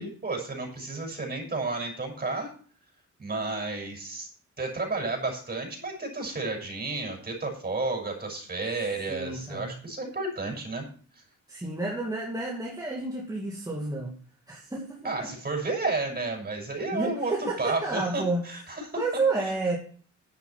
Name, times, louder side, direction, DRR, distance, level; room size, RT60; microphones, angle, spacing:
voice 1, 0.0-2.5 3.2-4.3 4.6-10.8 11.1-11.2 15.0-19.0, right 3 dB, 30° right, 2 dB, 6.3 m, -32 dB
voice 2, 9.1-9.7 11.5-14.1 14.5-15.3 16.9-18.5 18.9-19.8, right 3 dB, 10° right, -3 dB, 2.3 m, -30 dB
10.5 x 9.4 x 5.8 m, 0.43 s
cardioid pair, 125°, 30 cm